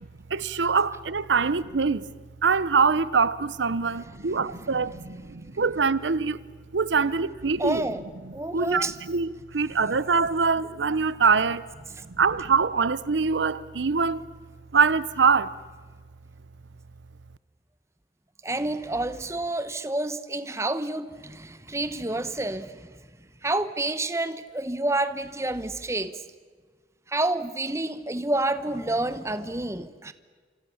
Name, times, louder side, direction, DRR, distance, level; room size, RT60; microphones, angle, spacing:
voice 1, 0.3-2.1 2.4-6.4 6.7-7.9 8.2-11.7 12.1-14.2 14.7-15.5, right 5 dB, 85° right, 0.8 m, -24 dB
voice 2, 7.6-8.0 8.3-8.9 12.0-12.1 18.4-22.9 23.4-26.2 27.1-30.1, right 2 dB, 15° right, 1.0 m, -29 dB
28.0 x 26.5 x 7.1 m
head